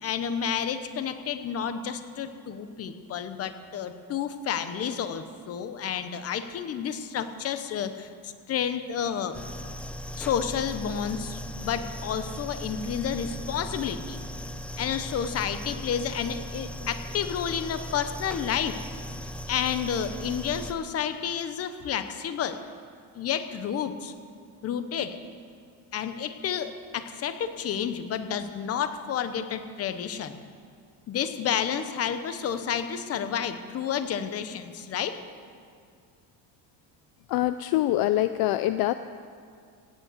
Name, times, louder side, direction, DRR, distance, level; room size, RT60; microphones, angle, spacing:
voice 1, 0.0-9.4 10.1-14.2 14.8-18.8 19.5-22.6 23.1-24.1 24.6-25.2 25.9-30.4 31.1-35.2, left 8 dB, 35° left, 10 dB, 0.9 m, -30 dB
sound 1, 9.3-20.7, equal, 5° left, 0.4 m, -38 dB
voice 2, 37.3-38.9, left 14 dB, 60° left, 12 dB, 0.5 m, -24 dB
16.5 x 9.5 x 8.1 m, 2.2 s
cardioid pair, 160°, 41 cm